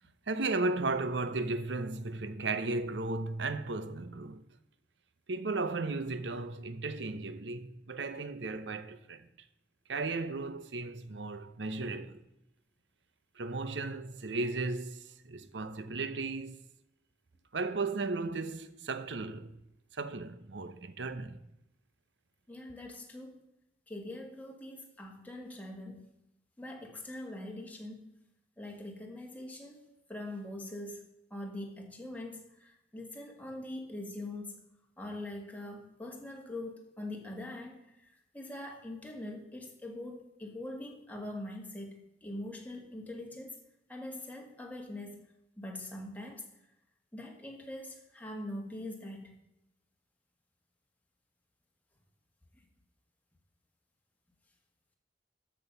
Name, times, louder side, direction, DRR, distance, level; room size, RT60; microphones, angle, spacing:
voice 1, 0.3-4.4 5.3-9.3 9.9-12.2 13.4-16.6 17.5-19.5 19.9-21.4, right 3 dB, 80° right, 0.8 m, -35 dB
voice 2, 22.5-23.5 23.9-26.1 26.6-28.0 28.6-34.6 35.0-38.1 38.3-43.6 43.9-45.3 45.6-46.5 47.1-49.3, left 1 dB, 10° left, 1.9 m, -43 dB
13.0 x 6.3 x 5.4 m
head